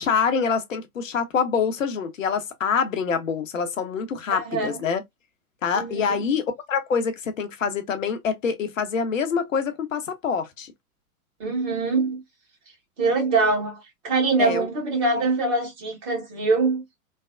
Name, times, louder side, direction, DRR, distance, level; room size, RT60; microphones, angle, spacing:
voice 1, 0.0-5.0 5.6-10.7 14.4-14.7, left 6 dB, 60° left, 0.7 m, -25 dB
voice 2, 4.3-4.8 5.7-6.2 11.4-12.2 13.0-16.8, right 3 dB, 30° right, 1.3 m, -24 dB
3.1 x 2.0 x 2.3 m
figure-of-eight pair, 110°, 44 cm